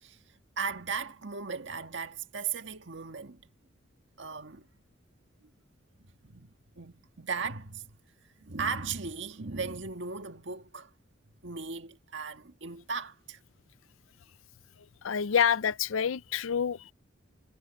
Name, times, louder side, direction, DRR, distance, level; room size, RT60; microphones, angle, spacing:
voice 1, 0.6-3.4 4.2-4.7 6.2-7.9 8.4-10.9 11.4-13.4, right 5 dB, 70° right, 1.6 m, -37 dB
voice 2, 15.0-16.9, left 7 dB, 90° left, 0.5 m, -27 dB
head